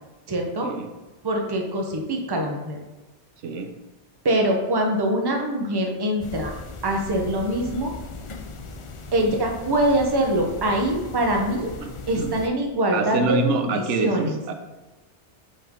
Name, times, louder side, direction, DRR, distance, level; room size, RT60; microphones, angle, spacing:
voice 1, 0.3-0.7 1.2-2.8 4.2-6.5 6.8-7.9 9.1-11.7 12.1-14.4, right 1 dB, 25° right, 1 dB, 0.7 m, -24 dB
sound 1, 6.2-12.5, left 3 dB, 45° left, 0.4 m, -38 dB
voice 2, 11.8-12.3 12.9-14.5, right 3 dB, 85° right, 6 dB, 1.0 m, -26 dB
5.4 x 5.3 x 3.6 m, 1.1 s
omnidirectional pair, 1.2 m